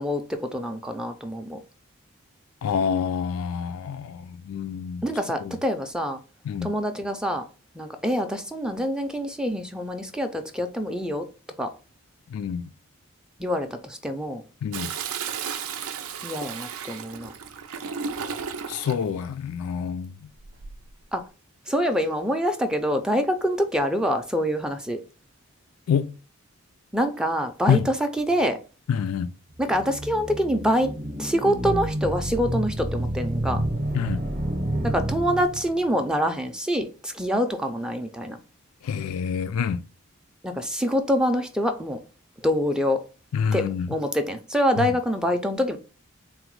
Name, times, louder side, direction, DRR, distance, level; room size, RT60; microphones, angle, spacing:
voice 1, 0.0-1.6 5.0-6.2 6.6-7.4 7.8-11.3 11.6-11.7 13.4-14.4 16.2-17.3 21.1-21.2 21.7-25.0 26.9-28.6 29.6-30.9 31.2-33.6 34.8-38.4 40.4-42.0 42.4-43.0 43.5-45.8, equal, 5° right, 0.3 m, -25 dB
voice 2, 2.6-5.0 5.4-5.6 6.4-6.7 12.3-12.7 14.6-14.9 18.7-20.2 25.9-26.1 27.7-27.9 28.9-29.3 33.9-34.2 38.8-39.8 43.3-43.9, left 7 dB, 85° left, 0.3 m, -27 dB
Toilet flush, 14.7-19.0 20.4-20.9, right 6 dB, 85° right, 0.5 m, -34 dB
sound 1, 29.6-35.9, right 1 dB, 35° right, 0.7 m, -29 dB
3.9 x 2.1 x 4.5 m
head